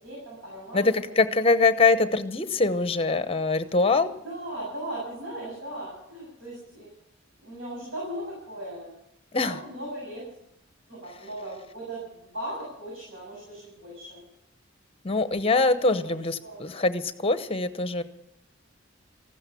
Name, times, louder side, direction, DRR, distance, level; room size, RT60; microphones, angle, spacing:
voice 1, 0.0-1.2 4.2-6.9 7.4-8.9 9.4-10.2 10.9-14.2 15.3-15.4 15.8-16.1 16.4-16.9, right 1 dB, 90° right, -5 dB, 7.3 m, -38 dB
voice 2, 0.7-4.1 9.3-9.6 15.0-18.0, left 3 dB, 30° left, 11 dB, 0.9 m, -23 dB
15.0 x 12.5 x 7.0 m, 0.80 s
head